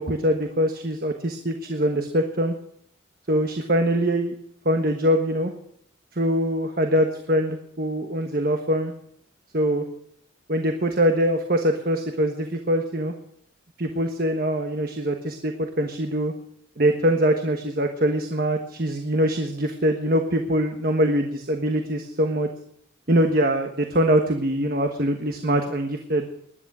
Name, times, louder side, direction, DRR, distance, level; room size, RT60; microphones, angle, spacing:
voice 1, 0.0-2.5 3.3-4.3 4.6-5.5 6.2-8.9 9.5-9.8 10.5-13.1 13.8-16.3 16.8-22.5 23.1-26.3, equal, 50° right, 5 dB, 1.3 m, -23 dB
20.0 x 11.0 x 6.2 m, 0.69 s
head